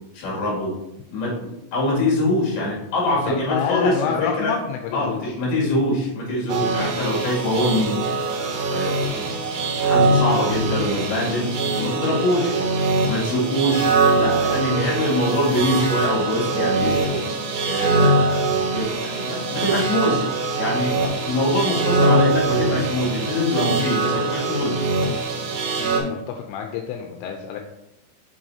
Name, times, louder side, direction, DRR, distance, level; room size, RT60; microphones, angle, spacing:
voice 1, 0.1-0.7 1.1-4.6 4.9-8.1 8.7-9.3 9.8-12.6 13.1-17.2 17.6-18.4 18.7-20.3 20.6-21.0 21.2-24.8, left 1 dB, 55° left, -4 dB, 3.8 m, -24 dB
voice 2, 3.3-5.2 18.0-18.2 21.0-21.1 25.8-27.6, left 7 dB, 85° left, 2 dB, 3.1 m, -28 dB
sound 1, 6.5-26.0, right 3 dB, 70° right, 3.2 m, -22 dB
6.9 x 6.0 x 2.7 m, 0.90 s
omnidirectional pair, 5.8 m